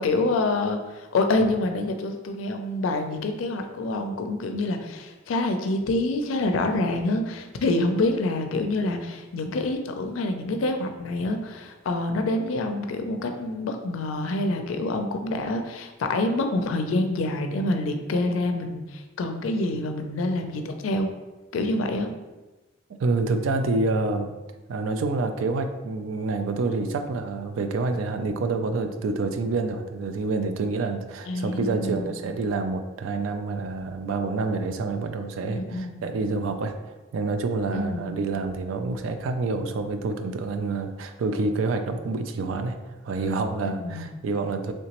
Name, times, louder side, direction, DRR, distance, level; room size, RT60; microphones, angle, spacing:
voice 1, 0.0-21.1 21.5-22.1 31.3-32.3 35.4-36.0 37.7-38.1 43.8-44.1, left 2 dB, 85° left, 6 dB, 0.4 m, -27 dB
voice 2, 22.9-24.3 24.7-36.8 37.1-42.8 43.0-44.7, right 3 dB, 75° right, 8 dB, 0.3 m, -27 dB
3.3 x 2.9 x 2.9 m, 1.1 s
head